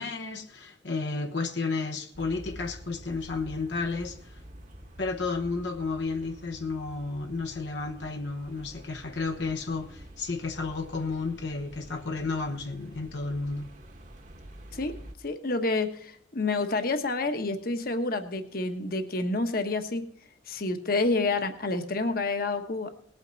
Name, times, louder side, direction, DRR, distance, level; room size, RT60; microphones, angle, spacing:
voice 1, 0.0-4.4 5.0-13.7, left 3 dB, 80° left, 1.0 m, -32 dB
sound 1, 2.1-15.2, right 1 dB, 45° right, 1.3 m, -48 dB
voice 2, 15.2-20.0 20.5-22.9, left 3 dB, 55° left, 1.2 m, -28 dB
19.0 x 9.0 x 4.0 m
head